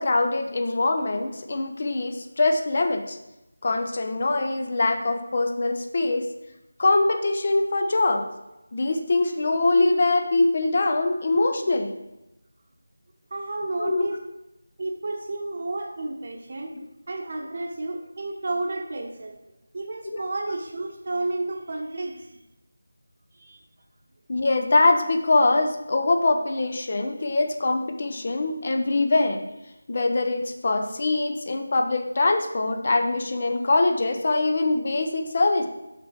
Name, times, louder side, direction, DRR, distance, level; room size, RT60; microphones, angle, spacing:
voice 1, 0.0-3.2 3.6-6.3 6.8-8.2 8.7-11.9 13.8-14.1 16.8-16.9 20.1-20.2 24.3-29.4 29.9-35.7, left 2 dB, 40° left, 6 dB, 0.6 m, -23 dB
voice 2, 13.3-14.2 14.8-16.7 17.1-19.4 19.7-22.3 23.3-23.6, right 2 dB, 40° right, 3 dB, 1.0 m, -31 dB
5.9 x 5.6 x 4.8 m, 0.93 s
figure-of-eight pair, 170°, 0 cm